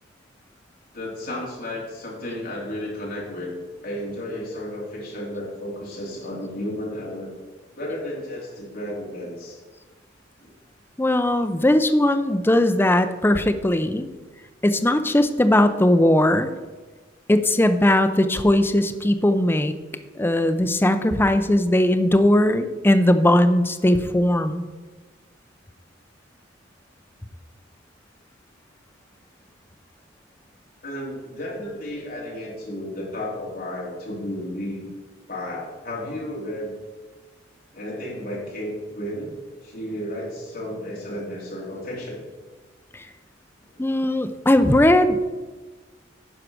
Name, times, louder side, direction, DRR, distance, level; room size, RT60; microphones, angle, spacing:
voice 1, 0.9-3.5 3.8-7.3 7.7-9.6 10.4-10.5 30.8-34.9 35.3-36.7 37.7-39.4 39.6-42.2 43.7-43.8, left 1 dB, 50° left, -4 dB, 2.9 m, -33 dB
voice 2, 11.0-14.1 14.6-16.5 17.3-19.7 20.2-24.7 42.9-43.0 43.8-45.2, left 1 dB, 10° left, 8 dB, 0.5 m, -19 dB
10.0 x 4.7 x 6.1 m, 1.3 s
head